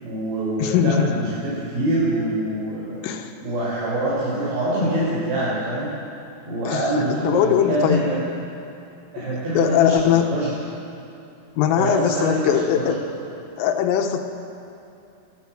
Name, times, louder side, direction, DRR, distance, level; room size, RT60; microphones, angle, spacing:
voice 1, 0.0-3.0 3.4-5.9 6.4-8.2 9.1-10.5 11.7-13.0, right 1 dB, 60° right, -9 dB, 7.2 m, -24 dB
voice 2, 0.6-1.1 3.0-3.3 6.7-6.8 7.3-8.0 9.6-10.3 11.6-13.0 13.6-14.2, left 9 dB, 85° left, 5 dB, 3.8 m, -20 dB
28.5 x 13.5 x 7.7 m, 2.8 s
omnidirectional pair, 5.7 m